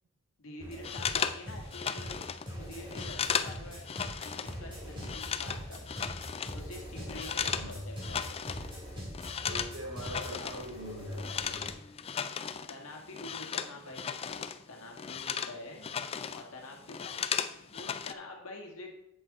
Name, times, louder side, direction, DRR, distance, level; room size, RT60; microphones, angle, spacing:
voice 1, 0.4-2.2 2.6-3.8 4.2-6.1 6.5-8.4 12.7-15.9 16.3-17.1 17.7-18.9, left 2 dB, 70° left, 0 dB, 2.0 m, -47 dB
sound 1, 0.6-11.7, equal, 25° right, 3.4 m, -43 dB
sound 2, 0.8-4.6 4.8-7.7 8.0-8.7 9.0-14.6 14.9-16.5 16.7-18.1, left 7 dB, 25° left, 0.3 m, -36 dB
voice 2, 9.4-11.7, equal, 75° right, -2 dB, 3.4 m, -41 dB
7.8 x 7.2 x 4.2 m, 0.82 s
head